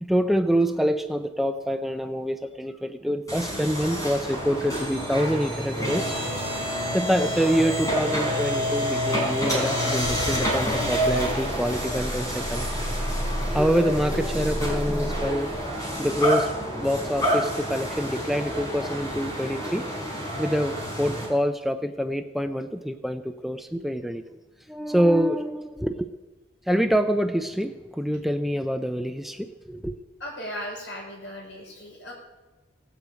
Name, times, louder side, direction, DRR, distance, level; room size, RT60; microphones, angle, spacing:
voice 1, 0.0-6.2 6.9-12.7 13.5-15.6 16.0-16.5 16.8-19.9 20.4-24.2 24.7-26.1 26.7-29.9, equal, ahead, 8 dB, 0.5 m, -26 dB
sound 1, 3.3-21.3, equal, 20° left, 4.3 m, -28 dB
voice 2, 30.2-32.1, equal, 75° left, -1 dB, 5.2 m, -37 dB
17.5 x 8.3 x 8.3 m, 1.2 s
head